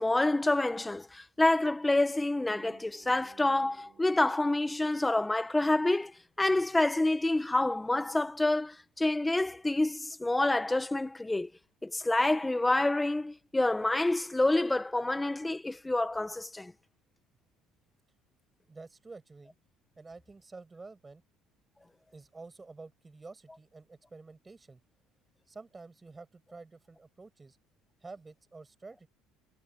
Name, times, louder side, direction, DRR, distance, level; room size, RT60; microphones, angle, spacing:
voice 1, 0.0-11.5 11.8-16.7, left 2 dB, 10° left, 1.5 m, -28 dB
sound 1, 2.5-6.0, right 8 dB, 40° right, 6.2 m, -60 dB
voice 2, 18.7-19.5 20.0-21.2 22.1-24.8 25.5-27.6 28.0-29.1, right 3 dB, 15° right, 6.2 m, -49 dB
cardioid pair, 115°, 0 cm